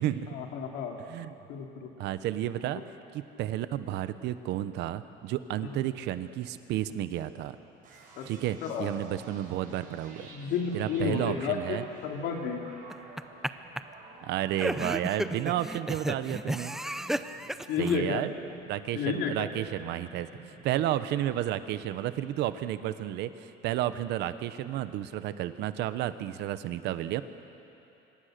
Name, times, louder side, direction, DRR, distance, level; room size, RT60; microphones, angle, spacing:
voice 1, 0.3-1.0 1.5-1.9 5.6-5.8 8.2-8.3 8.6-8.9 10.2-12.6 17.7-18.2 18.9-19.5, left 6 dB, 65° left, 1 dB, 3.3 m, -31 dB
voice 2, 2.0-2.8 3.1-7.6 8.2-10.3 10.7-11.8 14.2-16.8 17.8-18.3 18.7-27.2, right 12 dB, 65° right, 12 dB, 1.0 m, -32 dB
sound 1, 7.8-21.4, right 3 dB, 45° right, 5.8 m, -52 dB
sound 2, 12.9-13.5 13.8-13.9 14.5-18.0, right 1 dB, ahead, 0.5 m, -32 dB
26.5 x 24.5 x 6.7 m, 2.9 s
cardioid pair, 150°, 19 cm